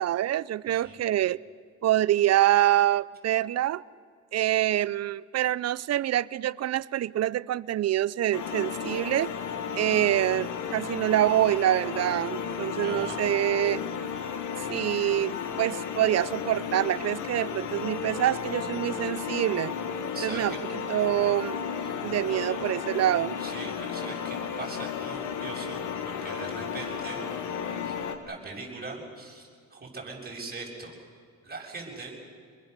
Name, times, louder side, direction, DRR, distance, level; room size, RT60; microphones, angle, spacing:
voice 1, 0.0-1.4 1.8-3.8 4.3-9.3 9.8-13.8 14.7-19.7 20.2-21.6 22.0-23.4, right 13 dB, 60° right, 0.6 m, -26 dB
voice 2, 0.7-1.0 12.8-13.2 20.1-20.4 21.8-22.0 22.2-22.7 23.4-27.4 27.8-28.0 28.2-30.9 31.4-32.3, right 3 dB, 30° right, 7.0 m, -41 dB
sound 1, 8.3-28.2, left 7 dB, 85° left, 1.8 m, -34 dB
26.5 x 21.5 x 6.8 m
cardioid pair, 90°, 30 cm